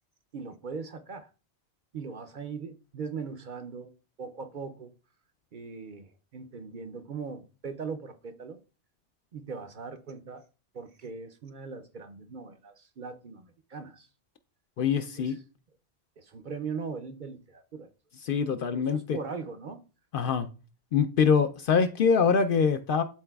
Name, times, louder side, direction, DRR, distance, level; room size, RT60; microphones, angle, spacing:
voice 1, 0.3-1.3 1.9-3.9 4.2-4.9 5.5-8.6 9.3-10.4 10.7-14.1 15.2-15.4 16.2-17.9 18.7-19.8, right 5 dB, 55° right, 0.6 m, -40 dB
voice 2, 14.8-15.4 18.2-19.2 20.1-20.5 20.9-23.0, left 6 dB, 60° left, 0.6 m, -24 dB
11.5 x 4.0 x 2.3 m
omnidirectional pair, 1.2 m